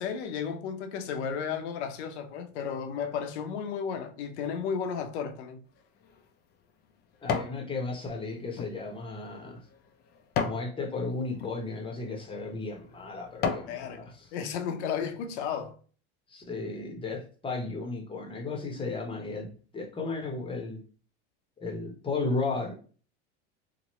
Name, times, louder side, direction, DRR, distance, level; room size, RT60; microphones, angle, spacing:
voice 1, 0.0-5.6 13.7-14.0 14.3-15.8, left 7 dB, 80° left, 0.7 m, -33 dB
sound 1, 5.8-7.6 8.1-10.7 11.3-11.5 12.2-12.4 12.9-13.8 14.2-14.3, left 6 dB, 30° left, 0.4 m, -34 dB
voice 2, 7.2-9.6 10.4-14.3 16.3-20.8 21.6-22.7, left 3 dB, 15° left, 0.8 m, -34 dB
3.0 x 2.1 x 3.0 m
supercardioid pair, 110°, 33 cm